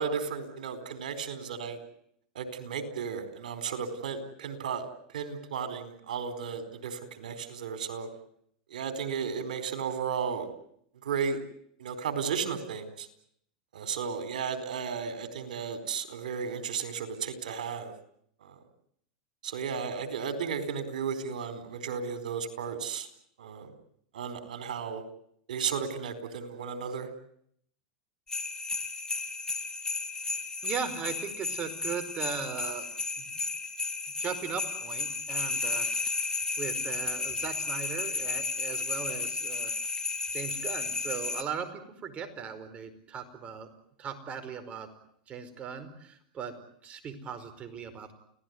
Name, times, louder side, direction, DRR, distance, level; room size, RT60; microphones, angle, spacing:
voice 1, 0.0-1.8 2.3-4.9 5.1-8.1 8.7-10.5 11.0-11.4 11.8-13.1 13.7-17.9 18.4-18.5 19.4-23.1 23.4-23.7 24.1-25.0 25.5-27.1, right 6 dB, 85° right, 10 dB, 4.4 m, -34 dB
sound 1, 28.3-41.4, left 4 dB, 15° left, 2.7 m, -33 dB
voice 2, 30.6-32.9 33.2-33.4 34.2-35.9 36.2-36.3 36.6-39.8 40.3-43.7 44.0-44.9 45.3-46.5 46.8-48.1, right 6 dB, 30° right, 8 dB, 4.9 m, -38 dB
30.0 x 18.0 x 9.6 m, 0.70 s
hypercardioid pair, 115°, 4 cm